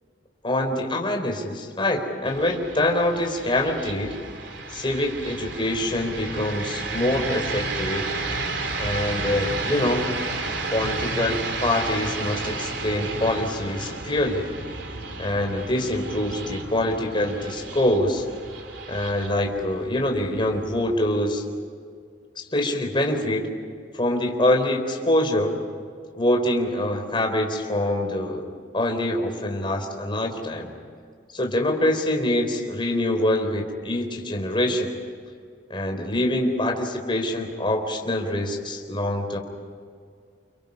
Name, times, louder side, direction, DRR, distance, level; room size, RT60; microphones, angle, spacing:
voice 1, 0.4-4.2 4.7-8.1 8.8-10.1 10.7-14.5 15.2-18.2 18.9-21.4 22.5-23.5 23.9-25.6 26.1-28.4 28.7-30.7 31.3-34.9 35.7-39.4, left 1 dB, 30° left, 2 dB, 4.0 m, -25 dB
sound 1, 2.2-21.2, right 3 dB, 80° right, 3.1 m, -32 dB
29.5 x 29.0 x 5.5 m, 2.1 s
head